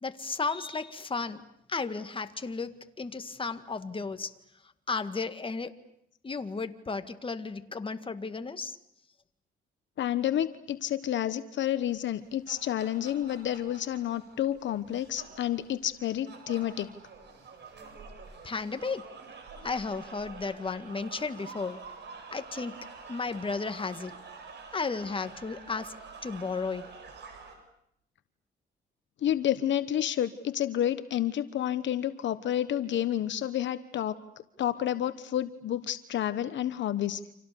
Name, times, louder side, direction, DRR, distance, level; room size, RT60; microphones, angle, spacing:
voice 1, 0.0-4.3 4.9-5.7 6.2-8.8 18.4-19.1 19.6-21.8 22.3-22.8 23.1-24.1 24.7-25.9 26.2-26.9, left 4 dB, 25° left, 9 dB, 1.9 m, -34 dB
voice 2, 10.0-16.9 29.2-34.1 34.6-37.3, left 11 dB, 70° left, 12 dB, 1.1 m, -30 dB
sound 1, 12.1-27.5, right 4 dB, 60° right, 7.9 m, -48 dB
29.5 x 27.0 x 7.0 m, 0.75 s
cardioid pair, 90°, 20 cm